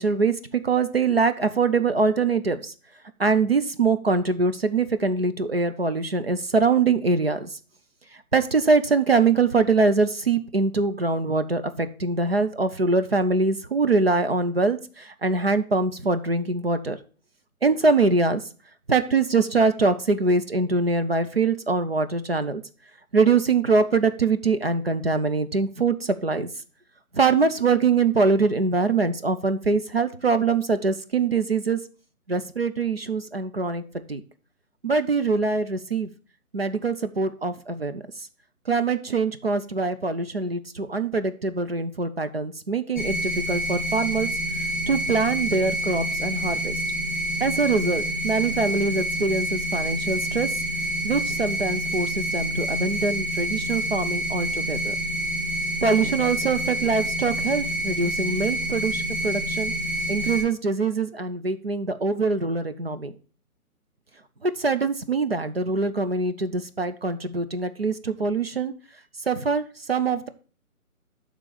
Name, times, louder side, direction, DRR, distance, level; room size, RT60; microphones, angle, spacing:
voice 1, 0.0-2.7 3.2-7.5 8.3-17.0 17.6-18.4 18.9-22.6 23.1-26.5 27.1-31.8 32.3-33.8 34.1-34.2 34.8-36.1 36.5-38.0 38.7-44.3 44.9-46.8 47.4-50.5 51.0-54.9 55.8-59.7 60.1-63.1 64.4-68.7 69.3-69.6 69.9-70.3, right 4 dB, 45° right, 10 dB, 0.5 m, -23 dB
sound 1, 42.9-60.4, right 1 dB, 5° left, 1.8 m, -28 dB
11.0 x 3.7 x 4.8 m, 0.40 s
hypercardioid pair, 175°, 43 cm